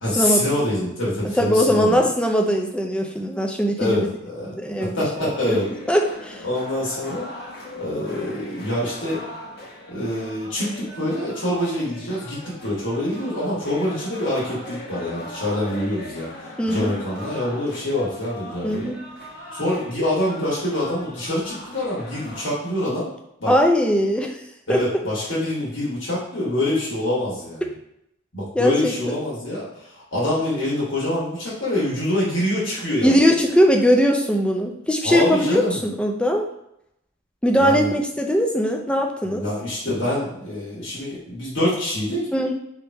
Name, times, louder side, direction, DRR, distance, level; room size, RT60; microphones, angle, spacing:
voice 1, 0.0-2.1 3.8-4.5 4.8-5.7 6.4-7.3 7.8-9.2 9.9-18.9 19.5-23.1 23.4-23.5 24.7-27.6 28.3-33.1 35.0-35.8 37.6-37.9 39.2-42.3, left 1 dB, 75° left, -7 dB, 1.6 m, -25 dB
voice 2, 1.2-4.1 4.5-5.0 5.5-6.4 16.6-16.9 18.6-19.0 23.5-24.4 24.7-24.8 28.5-29.2 33.0-36.4 37.4-39.5 42.3-42.5, equal, 5° left, 2 dB, 0.4 m, -20 dB
sound 1, 5.2-22.4, left 1 dB, 55° left, 1.0 m, -40 dB
3.5 x 3.0 x 4.5 m, 0.79 s
head